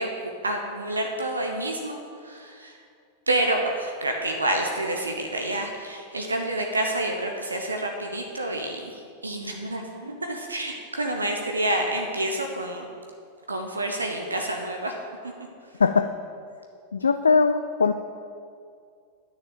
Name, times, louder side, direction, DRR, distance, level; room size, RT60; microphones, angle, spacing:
voice 1, 0.0-2.8 3.3-12.9 13.5-14.9 15.2-15.3, right 1 dB, 80° right, 2 dB, 1.0 m, -28 dB
voice 2, 16.9-17.9, left 5 dB, 75° left, 9 dB, 0.4 m, -20 dB
10.0 x 6.7 x 7.6 m, 2.3 s
figure-of-eight pair, 90°, 0 cm